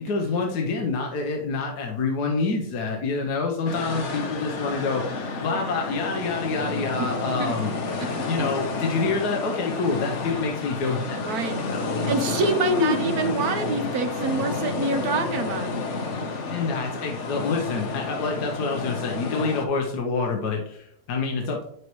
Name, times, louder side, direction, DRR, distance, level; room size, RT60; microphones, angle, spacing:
voice 1, 0.0-7.7 8.3-11.2 11.7-11.9 12.6-13.0 16.5-21.6, left 4 dB, 75° left, 1 dB, 1.4 m, -27 dB
sound 1, 3.7-19.7, left 3 dB, 50° left, 1.1 m, -30 dB
voice 2, 11.3-11.6 12.1-15.8, right 4 dB, 65° right, 6 dB, 1.4 m, -26 dB
8.8 x 6.2 x 3.1 m, 0.70 s
omnidirectional pair, 1.7 m